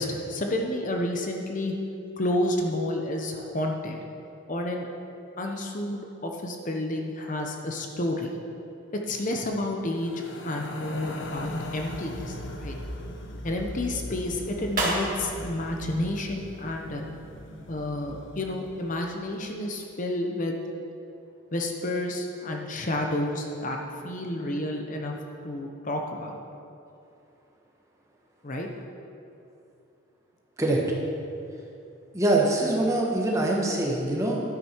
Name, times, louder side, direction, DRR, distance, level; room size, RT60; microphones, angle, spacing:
voice 1, 0.0-1.7 2.2-4.0 4.5-4.9 5.4-8.3 8.9-10.1 10.4-12.7 13.4-17.0 17.7-20.6 21.5-23.8 24.0-25.1 25.4-26.4 28.4-28.7, left 1 dB, 40° left, 2 dB, 0.9 m, -30 dB
sound 1, 9.9-19.2, left 1 dB, 65° left, 1.0 m, -39 dB
sound 2, 14.6-17.1, right 2 dB, 40° right, 2.1 m, -37 dB
voice 2, 32.1-34.4, right 1 dB, 15° right, -2 dB, 1.3 m, -24 dB
11.5 x 10.0 x 4.5 m, 2.6 s
head